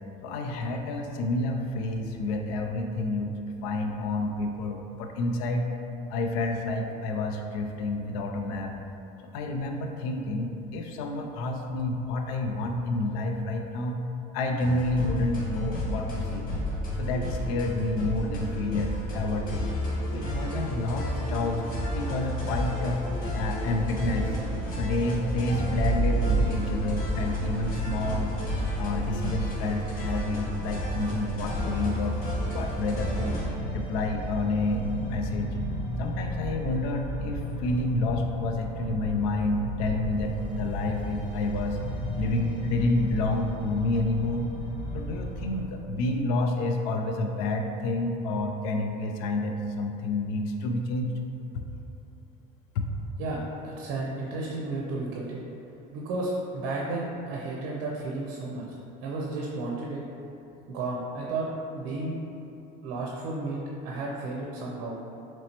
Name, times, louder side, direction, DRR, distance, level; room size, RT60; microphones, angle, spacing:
voice 1, 0.2-3.3 3.6-5.6 6.1-8.7 9.3-14.0 14.3-16.5 17.0-19.7 20.1-21.6 21.9-23.0 23.3-24.3 24.8-28.3 28.8-32.2 32.4-33.4 33.7-35.5 36.0-41.8 42.2-44.5 44.9-51.1 51.5-51.6 52.8-52.9, left 2 dB, 90° left, 4 dB, 0.4 m, -29 dB
sound 1, 14.6-33.4, left 1 dB, 50° left, 1.1 m, -32 dB
Thunder, 18.0-36.1, right 3 dB, 10° right, 0.6 m, -36 dB
sound 2, 32.0-45.6, equal, 25° left, 0.8 m, -35 dB
voice 2, 53.2-55.4 55.9-58.6 59.0-60.0 60.7-61.5 61.7-62.1 62.8-65.0, right 2 dB, 75° right, -3 dB, 0.6 m, -33 dB
4.2 x 3.0 x 2.9 m, 2.8 s
cardioid pair, 120°, 18 cm